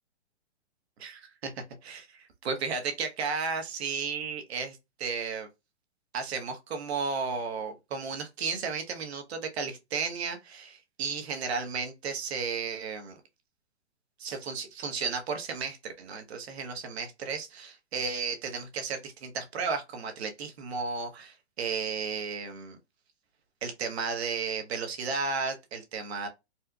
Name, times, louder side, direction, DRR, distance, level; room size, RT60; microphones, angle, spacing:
voice 1, 1.0-1.5 1.8-5.5 6.1-13.2 14.2-22.8 23.6-26.3, right 5 dB, 65° right, 1.1 m, -34 dB
4.3 x 2.3 x 2.3 m
hypercardioid pair, 135°, 34 cm